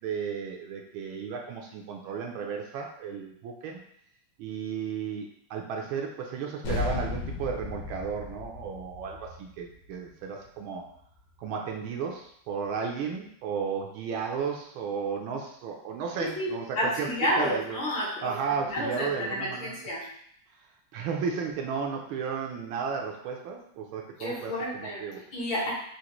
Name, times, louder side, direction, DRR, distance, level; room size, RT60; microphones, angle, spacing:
voice 1, 0.0-3.8 4.4-10.8 11.4-17.1 17.4-17.8 18.2-19.7 20.9-25.2, right 6 dB, 75° right, 1 dB, 1.3 m, -34 dB
sound 1, 6.6-11.4, left 3 dB, 90° left, 1.8 m, -36 dB
voice 2, 16.2-18.3 18.6-20.1 24.2-25.0 25.3-25.7, equal, 65° left, -6 dB, 2.0 m, -30 dB
6.3 x 2.5 x 2.9 m, 0.69 s
omnidirectional pair, 2.4 m